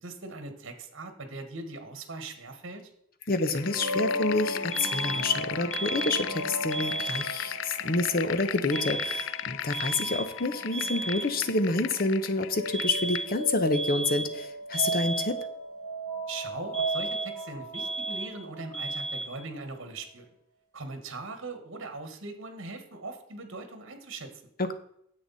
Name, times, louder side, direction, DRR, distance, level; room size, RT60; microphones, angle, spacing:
voice 1, 0.0-2.9 16.3-20.2 20.7-24.4, right 3 dB, 65° right, 7 dB, 1.6 m, -40 dB
sound 1, 3.3-13.3, left 12 dB, 60° left, 0.3 m, -37 dB
voice 2, 3.3-15.4 24.6-24.7, left 2 dB, 45° left, 10 dB, 0.9 m, -28 dB
sound 2, 3.6-19.2, right 1 dB, 25° right, 3.3 m, -36 dB
sound 3, 4.7-5.4 5.7-6.4 6.7-7.4 8.7-9.4 9.7-10.4 10.7-11.4 12.7-13.4 13.7-14.4 14.7-15.4 16.7-17.4 17.7-18.4 18.7-19.4, right 2 dB, 5° left, 2.0 m, -34 dB
9.8 x 7.9 x 4.2 m, 0.72 s
head